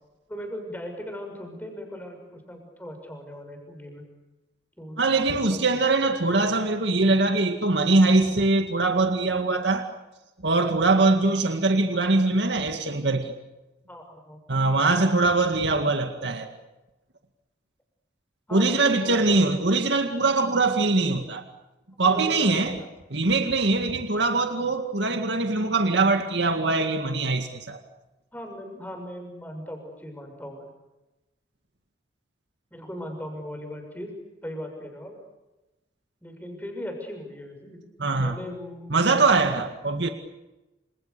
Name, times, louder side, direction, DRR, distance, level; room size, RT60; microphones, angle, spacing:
voice 1, 0.3-4.0 4.8-5.6 13.9-14.4 18.5-19.6 22.0-22.9 28.3-30.7 32.7-34.1 34.4-35.2 36.2-37.8 38.2-39.5, equal, 10° left, 3 dB, 6.8 m, -38 dB
voice 2, 5.0-9.9 10.4-13.3 14.5-16.5 18.5-21.4 22.0-22.8 23.1-27.8 38.0-38.4 38.9-40.1, right 3 dB, 75° right, 5 dB, 2.1 m, -22 dB
29.0 x 27.5 x 6.9 m, 1.0 s
head